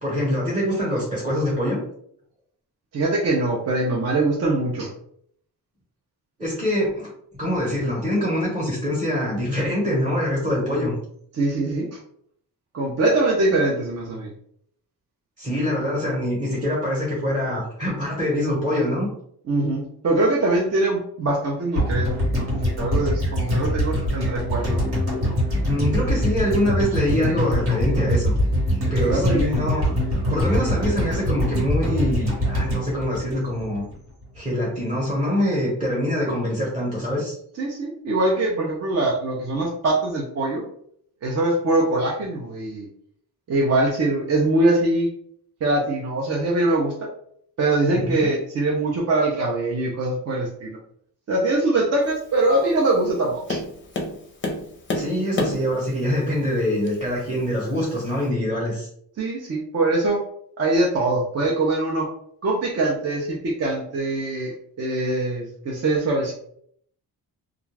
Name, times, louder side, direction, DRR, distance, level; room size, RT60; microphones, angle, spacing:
voice 1, 0.0-1.8 6.4-10.9 15.4-19.1 25.6-28.3 28.9-29.8 30.3-33.8 34.3-37.4 47.9-48.2 54.9-58.9, equal, 15° right, -5 dB, 0.9 m, -24 dB
voice 2, 2.9-4.9 11.4-12.0 12.7-14.3 19.5-24.8 29.0-29.4 30.6-30.7 37.6-40.6 41.2-42.9 43.5-45.1 45.6-46.9 47.6-50.8 51.3-53.6 59.2-60.2 60.6-62.1 62.4-66.3, right 2 dB, 40° right, -2 dB, 0.5 m, -23 dB
sound 1, 21.7-34.0 34.2-34.3, equal, 70° right, 1.3 m, -23 dB
Tap, 52.0-58.3, left 2 dB, 30° left, 0.5 m, -33 dB
2.4 x 2.2 x 3.2 m, 0.66 s
wide cardioid pair, 165°, 39 cm